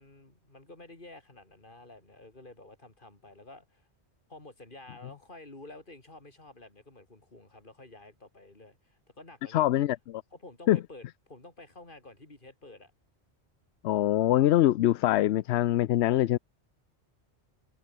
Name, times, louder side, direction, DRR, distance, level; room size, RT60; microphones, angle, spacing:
voice 1, 0.0-3.9 4.3-9.8 10.3-12.9, left 2 dB, 45° left, 3.9 m, -50 dB
voice 2, 9.5-10.2 10.7-10.8 13.8-16.4, left 14 dB, 70° left, 0.8 m, -24 dB
omnidirectional pair, 1.2 m